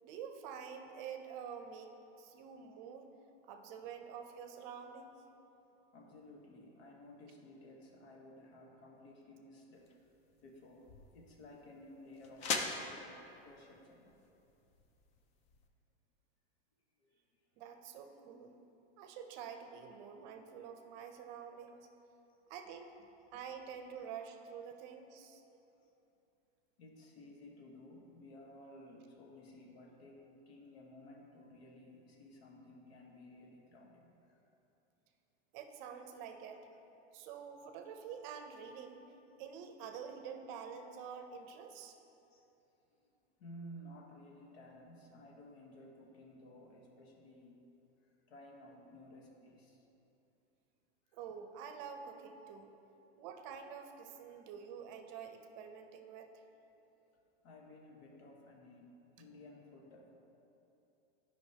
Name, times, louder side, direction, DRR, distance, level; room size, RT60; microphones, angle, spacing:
voice 1, 0.0-3.1 3.4-5.2 17.6-18.6 19.0-21.9 22.5-22.9 23.3-25.4 35.5-36.7 37.1-39.0 39.4-42.0 51.1-52.7 53.2-56.4, right 7 dB, 45° right, 6 dB, 0.6 m, -48 dB
voice 2, 5.9-10.0 10.4-14.2 17.0-17.4 22.3-22.4 25.6-25.9 26.8-34.4 42.3-42.5 42.9-43.1 43.4-47.7 48.0-49.9 51.1-51.2 54.3-54.4 57.4-60.1, left 1 dB, 70° left, 1 dB, 1.3 m, -56 dB
sound 1, 9.7-15.7, left 4 dB, 20° left, 0.3 m, -44 dB
11.0 x 5.2 x 2.8 m, 2.9 s
supercardioid pair, 145°, 32 cm